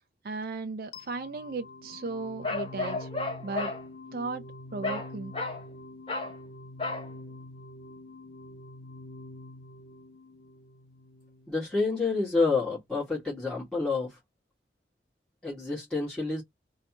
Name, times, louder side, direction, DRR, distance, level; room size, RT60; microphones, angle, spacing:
voice 1, 0.2-3.1 3.4-3.7 4.1-4.4 4.7-5.3, right 3 dB, 55° right, 0.5 m, -36 dB
sound 1, 0.9-11.9, left 2 dB, 65° left, 0.4 m, -46 dB
Bark, 2.4-3.8 4.8-5.1 5.3-5.6 6.1-6.4 6.8-7.1, left 2 dB, 30° left, 1.3 m, -32 dB
voice 2, 11.5-14.2 15.4-16.4, left 3 dB, 5° left, 1.7 m, -28 dB
3.3 x 2.8 x 2.9 m
head